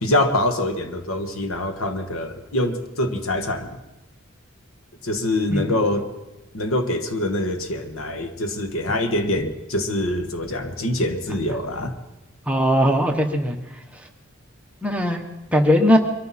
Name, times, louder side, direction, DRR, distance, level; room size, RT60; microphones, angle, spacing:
voice 1, 0.0-3.8 5.0-6.1 6.5-11.9, left 1 dB, 90° left, 8 dB, 1.4 m, -24 dB
voice 2, 12.5-13.5 14.8-15.2 15.5-16.0, equal, 5° right, 3 dB, 1.0 m, -19 dB
23.5 x 13.5 x 4.2 m, 1.0 s
head